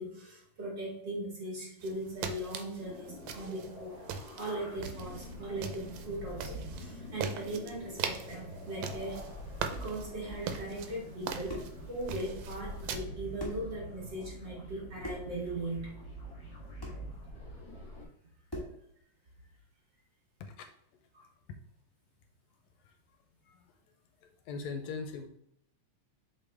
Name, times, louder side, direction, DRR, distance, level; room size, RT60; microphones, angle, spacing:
voice 1, 0.0-4.0 4.4-9.2 9.7-11.6 11.9-15.9 21.1-21.2, right 1 dB, 40° right, -3 dB, 2.2 m, -39 dB
sound 1, 1.8-13.0, right 7 dB, 80° right, 1.9 m, -41 dB
sound 2, 2.8-18.1, equal, 45° left, 1.4 m, -45 dB
sound 3, 11.5-11.8 13.0-13.1 13.4-13.7 15.0-15.4 16.8-17.1 18.5-18.8, equal, 15° left, 0.7 m, -41 dB
voice 2, 20.4-20.7 22.8-23.0 23.4-23.8 24.2-25.3, left 4 dB, 80° left, 7 dB, 1.8 m, -41 dB
7.5 x 4.1 x 3.3 m, 0.72 s
omnidirectional pair, 3.3 m